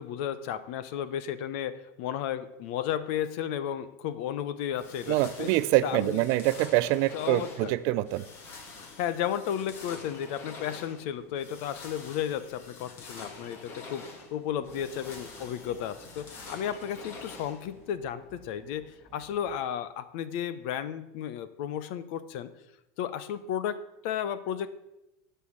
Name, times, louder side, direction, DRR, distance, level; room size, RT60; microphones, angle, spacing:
voice 1, 0.0-5.5 5.8-6.2 7.1-7.7 9.0-22.5 23.0-24.7, left 9 dB, 45° left, 13 dB, 0.8 m, -33 dB
sound 1, 4.7-17.9, left 3 dB, 30° left, 1.7 m, -47 dB
voice 2, 5.1-8.2, right 16 dB, 40° right, 15 dB, 0.4 m, -25 dB
sound 2, 14.5-19.6, right 2 dB, 5° left, 2.9 m, -56 dB
12.5 x 5.7 x 8.6 m, 0.91 s
supercardioid pair, 175°, 8 cm